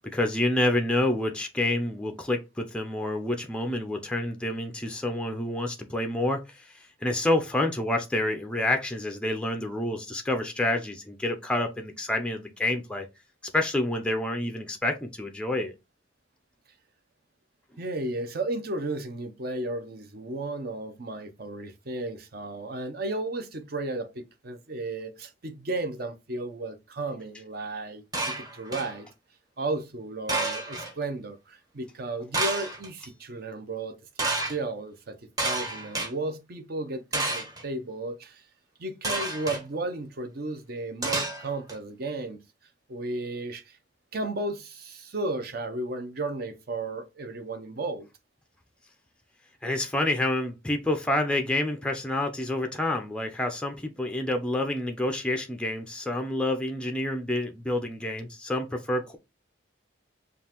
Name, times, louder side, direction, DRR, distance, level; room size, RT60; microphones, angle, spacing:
voice 1, 0.1-6.4 7.0-13.1 13.5-15.7 49.6-59.2, left 1 dB, 5° left, 0.4 m, -28 dB
voice 2, 17.8-29.1 29.6-34.0 34.5-35.2 35.4-38.4 38.8-42.4 42.9-43.8 44.1-48.1, right 2 dB, 50° right, 0.6 m, -34 dB
sound 1, 28.1-29.0 30.3-30.9 32.3-32.9 34.2-34.6 35.4-36.1 37.1-37.6 39.0-39.6 41.0-41.7, right 2 dB, 20° right, 0.9 m, -30 dB
5.3 x 2.4 x 2.9 m
head